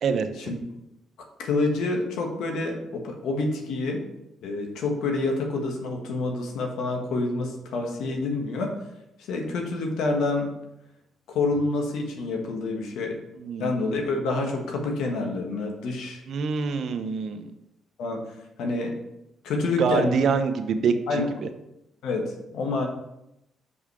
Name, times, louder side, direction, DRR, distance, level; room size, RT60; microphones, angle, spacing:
voice 1, 0.0-0.5 13.4-13.7 16.3-17.5 19.8-21.5, right 5 dB, 65° right, 7 dB, 0.7 m, -26 dB
voice 2, 1.4-4.0 4.4-8.7 9.3-10.5 11.3-13.2 13.6-16.2 18.0-19.0 19.4-20.1 21.1-21.3 22.0-22.9, left 3 dB, 85° left, 2 dB, 1.3 m, -27 dB
5.6 x 5.0 x 4.8 m, 0.85 s
cardioid pair, 90°, 0 cm